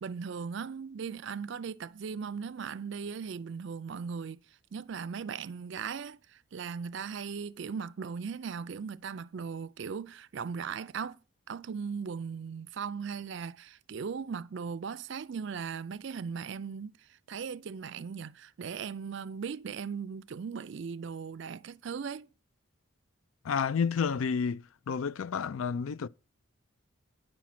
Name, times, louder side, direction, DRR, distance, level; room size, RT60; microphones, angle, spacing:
voice 1, 0.0-4.4 4.7-11.2 11.5-22.3, right 6 dB, 55° right, 0.4 m, -38 dB
voice 2, 23.4-26.1, left 6 dB, 75° left, 0.4 m, -30 dB
9.9 x 6.1 x 5.8 m
head